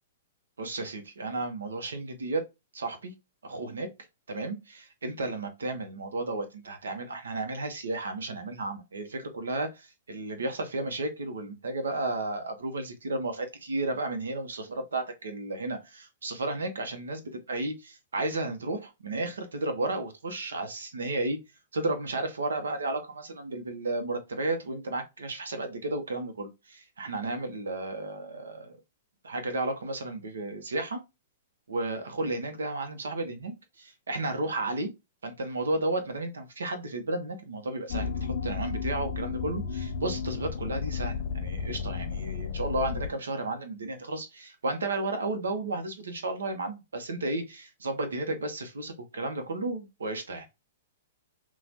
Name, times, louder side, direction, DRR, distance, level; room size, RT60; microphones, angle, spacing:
voice 1, 0.6-2.4 2.7-3.1 3.4-3.9 4.3-21.4 21.7-28.8 29.2-31.0 31.7-34.9 35.2-50.5, right 2 dB, 85° right, 0.9 m, -33 dB
sound 1, 37.9-43.1, left 5 dB, 60° left, 0.4 m, -33 dB
3.0 x 2.3 x 2.5 m
hypercardioid pair, 130°, 0 cm